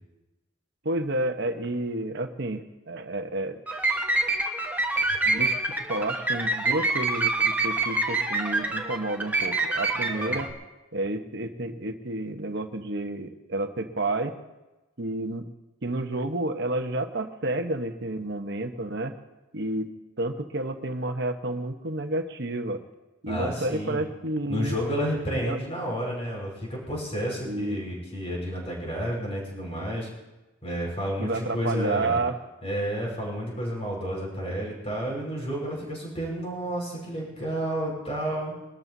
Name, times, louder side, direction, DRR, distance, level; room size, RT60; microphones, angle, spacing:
voice 1, 0.8-3.6 5.3-5.5 5.9-10.5 10.9-14.3 15.0-15.5 15.8-19.1 19.5-19.9 20.2-22.8 23.2-24.8 25.4-25.6 27.4-27.8 31.2-32.4, right 2 dB, 60° right, 6 dB, 1.1 m, -30 dB
sound 1, 3.7-10.5, right 2 dB, 10° right, 1.2 m, -26 dB
voice 2, 23.3-24.0 24.5-30.1 30.6-32.2 32.6-38.5, equal, 30° left, -2 dB, 5.1 m, -31 dB
23.0 x 13.5 x 2.8 m, 1.1 s
head